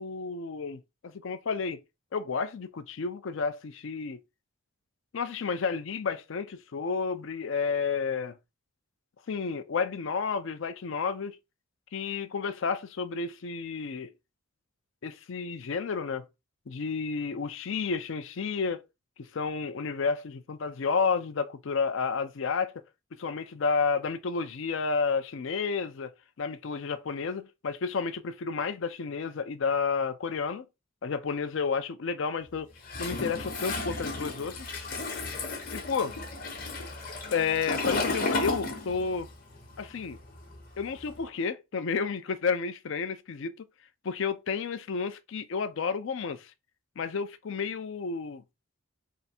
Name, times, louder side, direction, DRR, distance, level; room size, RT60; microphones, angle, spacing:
voice 1, 0.0-1.8 2.1-4.2 5.1-8.4 9.3-11.4 11.9-14.1 15.0-16.3 16.7-18.8 19.2-22.7 23.2-26.1 26.4-30.6 31.0-32.7 33.0-34.7 35.7-36.2 37.3-39.3 39.8-40.2 40.8-43.5 44.0-46.5 47.0-48.4, left 5 dB, 60° left, 0.4 m, -31 dB
Toilet flush, 32.9-39.3 39.6-41.2, left 2 dB, 40° left, 1.0 m, -33 dB
3.4 x 2.6 x 4.2 m
head